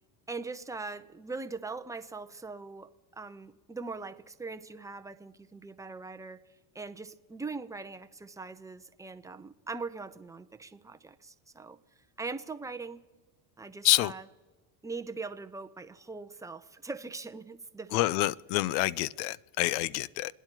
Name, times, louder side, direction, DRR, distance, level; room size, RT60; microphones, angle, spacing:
voice 1, 0.3-6.4 6.7-11.8 12.2-13.0 13.6-14.3 14.8-18.2, right 3 dB, 5° right, 0.6 m, -41 dB
voice 2, 17.9-20.3, left 17 dB, 85° left, 0.6 m, -27 dB
27.0 x 10.0 x 4.5 m
supercardioid pair, 105°, 50 cm